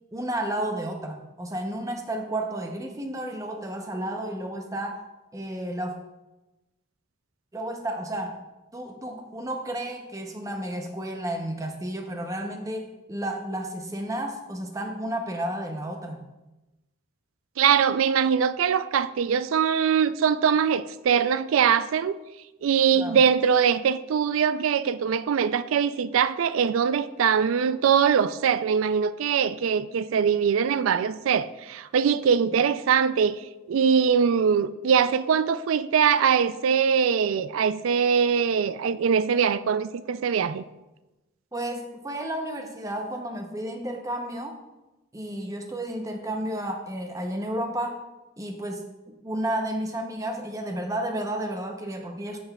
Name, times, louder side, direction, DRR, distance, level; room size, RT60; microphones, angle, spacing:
voice 1, 0.1-5.0 5.3-6.0 7.5-8.4 8.7-16.2 22.9-23.2 41.5-44.6 45.1-48.0 48.4-48.8 49.2-52.4, right 1 dB, 15° right, 0.6 m, -32 dB
voice 2, 17.6-22.2 22.6-33.4 33.7-40.6, right 7 dB, 80° right, 0.3 m, -22 dB
12.5 x 5.7 x 2.3 m
head